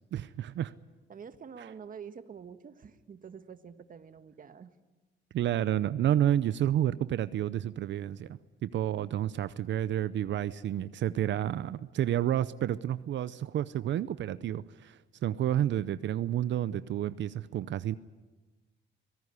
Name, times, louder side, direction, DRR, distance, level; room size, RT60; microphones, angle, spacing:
voice 1, 0.1-0.7 5.3-18.0, right 11 dB, 65° right, 15 dB, 0.7 m, -30 dB
voice 2, 1.1-4.7, right 7 dB, 45° right, 11 dB, 1.5 m, -47 dB
24.0 x 17.5 x 9.7 m, 1.2 s
cardioid pair, 90°, 20 cm